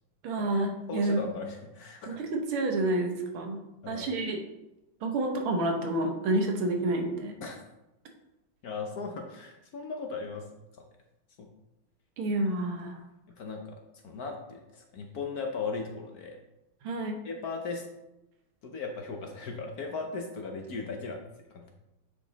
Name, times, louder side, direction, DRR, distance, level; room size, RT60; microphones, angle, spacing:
voice 1, 0.2-1.2 2.2-3.6 3.9-4.4 5.0-7.3 12.2-13.0 16.8-17.2, right 2 dB, 90° right, 3 dB, 2.0 m, -29 dB
voice 2, 0.9-2.2 3.8-4.1 7.4-7.6 8.6-10.5 10.8-10.9 11.4-11.5 13.3-13.8 14.0-16.4 17.2-17.8 18.6-21.7, left 4 dB, 60° left, 3 dB, 1.1 m, -37 dB
9.0 x 4.9 x 4.0 m, 0.93 s
omnidirectional pair, 2.3 m